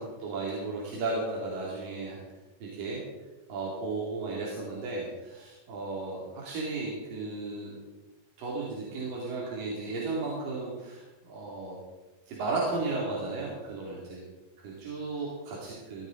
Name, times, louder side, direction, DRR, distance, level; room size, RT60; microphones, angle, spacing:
voice 1, 0.0-2.2 2.6-3.0 3.5-7.8 8.4-11.8 12.3-14.2 14.6-16.1, right 3 dB, 80° right, -5 dB, 4.3 m, -34 dB
17.0 x 13.0 x 3.9 m, 1.1 s
omnidirectional pair, 3.9 m